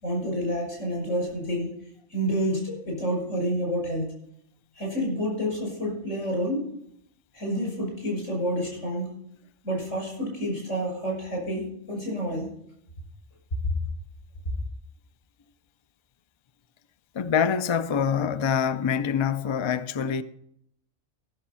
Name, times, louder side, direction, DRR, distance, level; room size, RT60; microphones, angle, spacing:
voice 1, 0.0-1.8 2.1-4.1 4.7-6.7 7.3-9.2 9.6-12.5, equal, 75° left, 6.8 m, -29 dB
voice 2, 17.1-20.2, left 7 dB, 50° left, 0.3 m, -25 dB
15.0 x 7.1 x 7.0 m
omnidirectional pair, 1.3 m